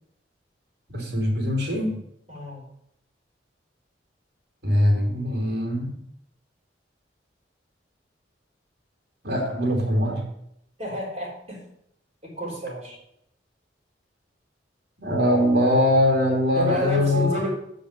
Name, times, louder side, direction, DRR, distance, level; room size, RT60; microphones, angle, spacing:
voice 1, 0.9-2.0 4.6-5.9 9.2-10.2 15.0-17.3, left 1 dB, 60° right, 0 dB, 3.0 m, -22 dB
voice 2, 2.3-2.6 10.8-11.6 12.2-13.0 16.5-17.5, equal, 35° right, -4 dB, 3.8 m, -30 dB
8.4 x 5.1 x 6.6 m, 0.76 s
head